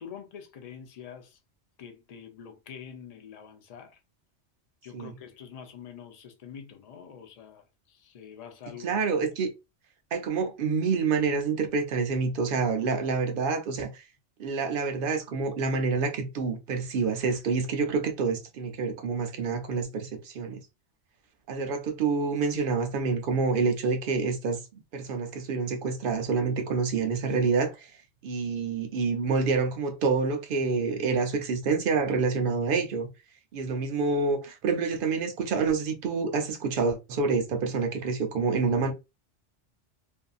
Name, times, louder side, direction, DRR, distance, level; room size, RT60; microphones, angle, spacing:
voice 1, 0.0-1.4 1.8-4.0 4.8-9.0, left 8 dB, 55° left, 0.4 m, -45 dB
voice 2, 8.8-9.5 10.1-14.0 14.4-20.6 21.5-24.6 24.9-27.9 28.2-33.1 33.5-38.9, right 4 dB, 60° right, 0.6 m, -27 dB
2.7 x 2.4 x 2.3 m
omnidirectional pair, 1.2 m